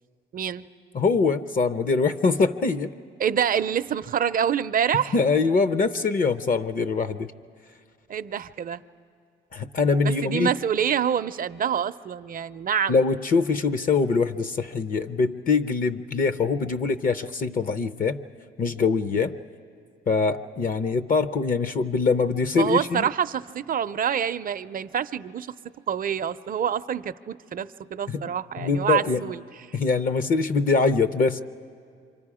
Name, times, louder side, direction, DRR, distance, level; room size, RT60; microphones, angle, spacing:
voice 1, 0.3-0.7 3.2-5.1 8.1-8.8 10.0-13.0 22.5-25.5 25.9-29.4 29.7-29.8, right 8 dB, 45° right, 13 dB, 0.5 m, -26 dB
voice 2, 0.9-2.9 5.1-7.3 9.5-10.5 12.9-18.2 18.6-19.3 20.1-23.1 28.1-28.2 28.6-29.3 29.7-31.4, left 4 dB, 45° left, 10 dB, 0.6 m, -23 dB
28.0 x 25.0 x 4.9 m, 2.2 s
cardioid pair, 90°, 20 cm